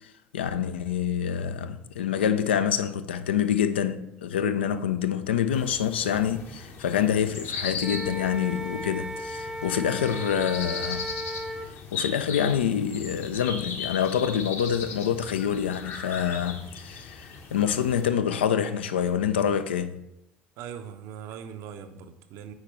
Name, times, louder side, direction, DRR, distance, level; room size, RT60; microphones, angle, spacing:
voice 1, 0.3-11.1 11.9-20.0, left 8 dB, 70° left, 0.4 m, -26 dB
sound 1, 5.5-18.1, left 4 dB, 40° left, 0.9 m, -38 dB
Wind instrument woodwind instrument, 7.8-11.7, equal, 10° right, 0.5 m, -35 dB
voice 2, 20.6-22.5, right 8 dB, 55° right, 0.6 m, -40 dB
8.5 x 4.4 x 3.0 m
figure-of-eight pair, 60°, 6 cm